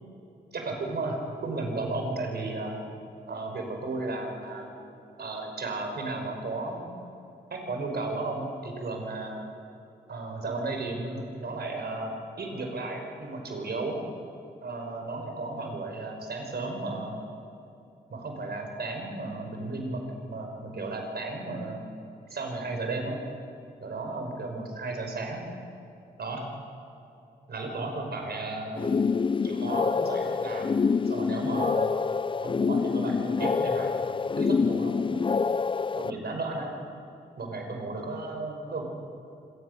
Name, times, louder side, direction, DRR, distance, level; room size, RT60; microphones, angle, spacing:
voice 1, 0.5-2.8 3.3-4.7 5.2-6.9 7.5-9.4 10.1-14.0 14.6-17.2 18.1-21.9 22.3-23.2 23.8-25.5 26.2-26.5 27.5-28.9 29.4-31.9 32.4-35.3 35.9-36.8 37.4-38.8, right 2 dB, 60° right, 3 dB, 5.3 m, -34 dB
sound 1, 28.7-36.1, left 5 dB, 25° left, 0.4 m, -26 dB
25.5 x 18.5 x 6.8 m, 2.8 s
cardioid pair, 60°, 19 cm